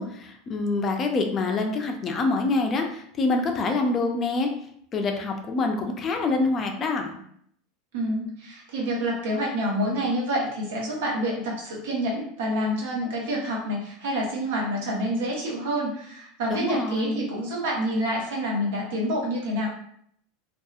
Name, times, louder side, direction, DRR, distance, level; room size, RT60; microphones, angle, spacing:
voice 1, 0.0-4.5 4.9-7.2 16.5-17.3, left 3 dB, 30° left, 4 dB, 0.4 m, -26 dB
voice 2, 7.9-19.7, equal, 90° right, -3 dB, 1.0 m, -27 dB
2.7 x 2.3 x 2.3 m, 0.68 s
supercardioid pair, 140°, 0 cm